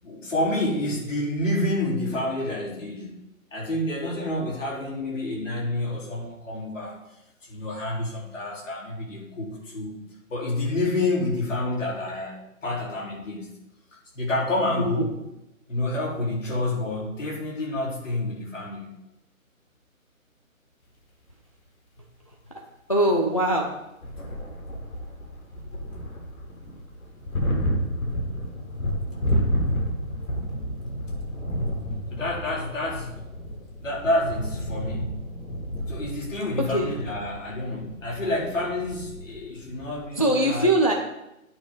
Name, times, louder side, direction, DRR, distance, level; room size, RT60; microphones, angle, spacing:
voice 1, 0.0-3.2 3.5-6.9 7.4-10.0 10.3-13.6 14.1-15.1 15.7-18.9 32.1-33.3 33.8-35.1 35.9-40.7, left 2 dB, 65° left, -3 dB, 4.2 m, -28 dB
voice 2, 22.9-23.7 36.7-36.9 40.2-40.9, right 1 dB, 25° left, 0 dB, 0.6 m, -21 dB
sound 1, 24.0-40.1, equal, 85° left, 3.6 m, -31 dB
11.0 x 8.8 x 4.0 m, 0.90 s
hypercardioid pair, 175°, 41 cm